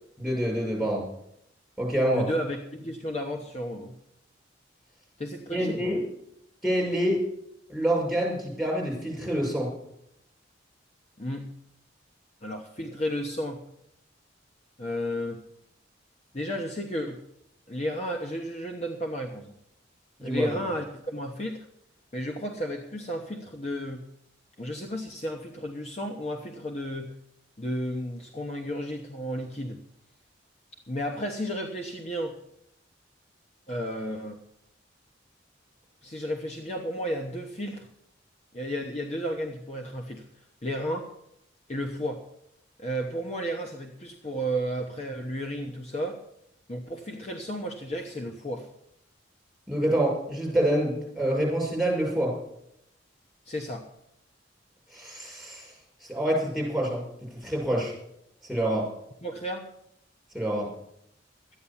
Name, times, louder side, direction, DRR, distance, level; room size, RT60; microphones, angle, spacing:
voice 1, 0.2-1.0 1.8-2.3 5.5-6.0 6.6-7.2 7.7-9.7 20.2-20.6 49.7-52.3 54.9-55.7 56.0-57.0 57.3-57.9 58.4-58.9 60.3-60.7, right 1 dB, ahead, -3 dB, 6.3 m, -26 dB
voice 2, 2.1-3.9 5.2-5.9 11.2-11.5 12.4-13.6 14.8-15.4 16.3-17.2 17.7-19.5 20.2-21.6 22.1-24.1 24.6-27.1 27.6-29.8 30.9-32.4 33.7-34.4 36.0-37.9 38.5-40.2 40.6-41.1 41.7-42.2 42.8-46.2 46.7-48.7 53.5-53.9 59.2-59.7, equal, 35° left, 3 dB, 1.0 m, -33 dB
13.0 x 9.5 x 7.2 m, 0.76 s
head